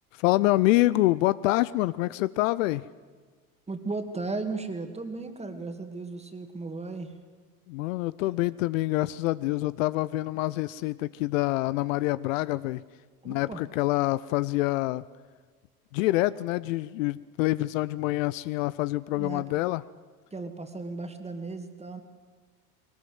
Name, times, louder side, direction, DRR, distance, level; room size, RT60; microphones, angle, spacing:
voice 1, 0.1-2.8 7.7-12.8 13.3-15.0 15.9-19.8, left 18 dB, 60° left, 17 dB, 0.6 m, -26 dB
voice 2, 3.7-7.1 8.2-8.4 13.2-13.6 19.1-19.5 20.3-22.0, right 3 dB, 15° right, 7 dB, 2.4 m, -35 dB
21.0 x 19.0 x 8.0 m, 1.4 s
hypercardioid pair, 80°, 44 cm